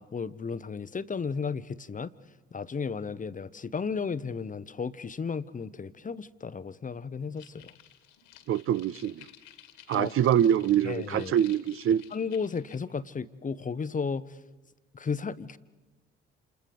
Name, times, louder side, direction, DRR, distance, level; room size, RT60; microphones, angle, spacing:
voice 1, 0.0-2.1 2.5-7.7 9.9-10.1 10.8-11.3 12.1-14.4 14.9-15.6, left 5 dB, 25° left, 0.9 m, -34 dB
sound 1, 7.4-12.8, left 12 dB, 65° left, 2.1 m, -54 dB
voice 2, 8.5-9.3 9.9-12.0, right 10 dB, 40° right, 0.7 m, -25 dB
29.0 x 28.0 x 5.2 m
figure-of-eight pair, 50°, 33 cm